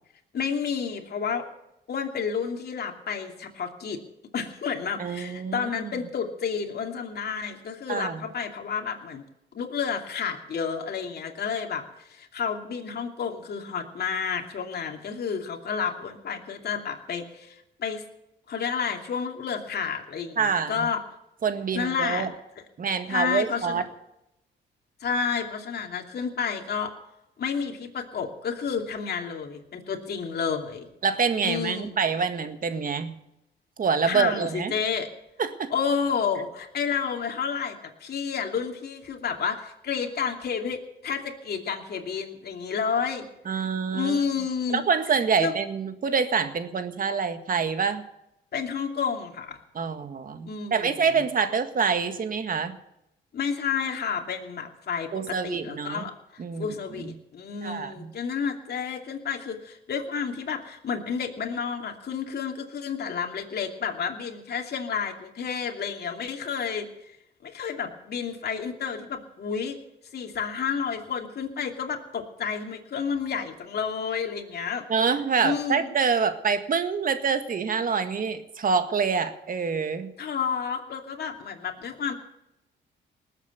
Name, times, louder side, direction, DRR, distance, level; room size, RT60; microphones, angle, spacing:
voice 1, 0.3-1.5 1.9-4.0 4.3-9.2 9.5-18.0 18.5-21.0 21.7-22.3 23.1-23.8 25.0-26.9 27.4-30.9 31.4-32.0 34.0-35.1 35.7-43.7 43.9-44.8 45.4-45.5 48.5-49.6 50.5-51.2 53.3-66.9 67.4-69.8 70.1-74.8 75.4-75.9 80.2-82.1, left 6 dB, 55° left, 3 dB, 2.8 m, -30 dB
voice 2, 5.0-5.9 7.9-8.3 20.4-20.9 21.4-22.3 22.8-23.8 31.0-33.2 33.8-34.7 35.4-35.7 43.5-44.2 44.7-48.0 49.8-52.8 55.1-56.1 56.4-56.7 57.0-57.1 57.6-58.1 74.9-80.1, right 5 dB, 45° right, 9 dB, 1.8 m, -26 dB
19.5 x 8.3 x 8.1 m, 0.84 s
cardioid pair, 90°, 20 cm